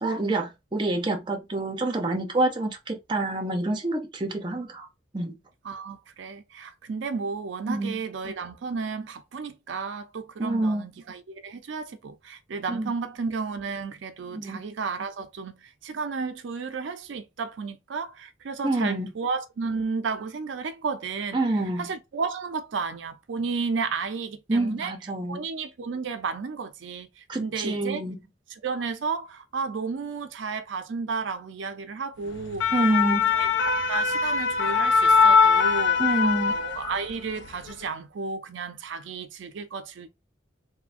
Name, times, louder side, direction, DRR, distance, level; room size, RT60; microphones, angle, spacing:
voice 1, 0.0-4.9 5.1-5.3 7.7-8.0 10.4-10.8 12.7-12.9 14.3-14.6 18.6-19.1 21.3-21.9 24.5-25.4 27.3-28.2 32.7-33.3 36.0-36.6, right 2 dB, 25° right, 0.5 m, -27 dB
voice 2, 5.6-21.4 21.8-24.9 25.3-28.0 28.5-32.9 33.3-40.1, right 5 dB, 80° right, 0.4 m, -33 dB
Parisian fire truck siren, 32.3-37.1 37.5-37.7, left 5 dB, 75° left, 0.4 m, -22 dB
3.1 x 2.1 x 2.4 m
head